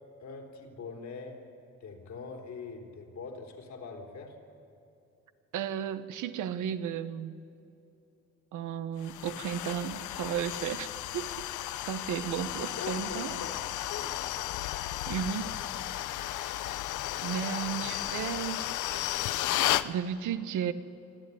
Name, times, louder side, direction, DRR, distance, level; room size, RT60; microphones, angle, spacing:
voice 1, 0.2-1.5 1.8-4.4 12.8-14.2, left 4 dB, 65° left, 2 dB, 3.8 m, -42 dB
voice 2, 5.5-7.3 8.5-11.3 11.8-13.3 15.1-15.5 16.4-16.8 17.2-19.1 19.8-20.7, right 9 dB, 80° right, 12 dB, 1.1 m, -34 dB
sound 1, 9.0-19.9, left 14 dB, 80° left, 0.7 m, -34 dB
24.5 x 13.0 x 9.9 m, 2.7 s
cardioid pair, 90°, 30 cm